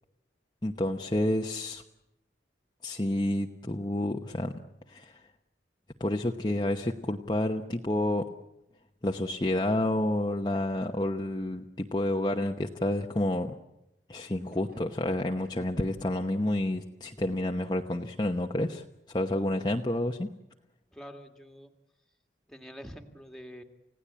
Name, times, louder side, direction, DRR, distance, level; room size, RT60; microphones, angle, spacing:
voice 1, 0.6-1.8 2.8-4.5 4.9-5.2 6.0-8.3 9.0-13.5 14.1-20.3, left 1 dB, 25° left, 2 dB, 1.0 m, -29 dB
Gurgling / Sink (filling or washing), 14.3-18.8, right 1 dB, 50° right, 6.4 m, -59 dB
voice 2, 20.9-21.7 22.5-23.6, equal, 5° left, 5 dB, 2.0 m, -46 dB
30.0 x 17.0 x 8.7 m, 0.89 s
head